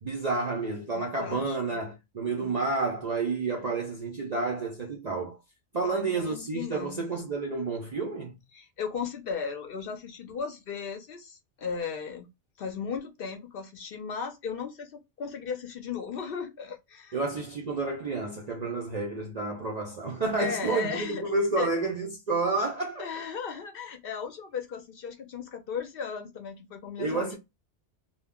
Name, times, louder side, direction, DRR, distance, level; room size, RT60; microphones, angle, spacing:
voice 1, 0.0-5.4 5.7-8.4 17.1-23.1 27.0-27.4, right 3 dB, 55° right, 0.5 m, -30 dB
voice 2, 0.9-1.8 2.3-2.6 5.8-7.1 8.5-12.3 12.6-17.2 20.4-21.3 21.6-21.7 23.0-27.4, left 6 dB, 60° left, 0.7 m, -36 dB
2.2 x 2.1 x 3.5 m
omnidirectional pair, 1.2 m